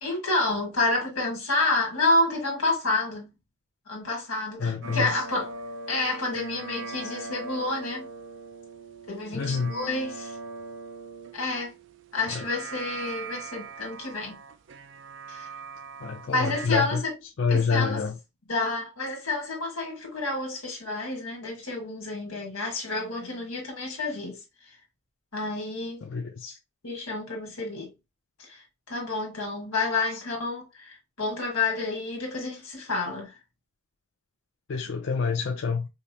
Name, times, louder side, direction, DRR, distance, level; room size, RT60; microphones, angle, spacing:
voice 1, 0.0-3.3 3.9-5.5 5.9-8.1 9.1-10.4 11.3-11.7 12.1-14.4 15.3-15.5 16.3-17.1 17.5-18.0 18.5-24.4 24.7-24.8 25.3-26.1 26.8-27.9 28.4-33.4, left 2 dB, 90° left, 1.6 m, -29 dB
voice 2, 4.6-5.2 9.3-9.8 12.3-12.4 16.0-17.0 17.4-18.2 26.0-26.6 34.7-35.9, left 5 dB, 60° left, 0.4 m, -27 dB
sound 1, 4.8-16.7, right 4 dB, 55° right, 0.3 m, -40 dB
5.1 x 2.0 x 2.7 m
head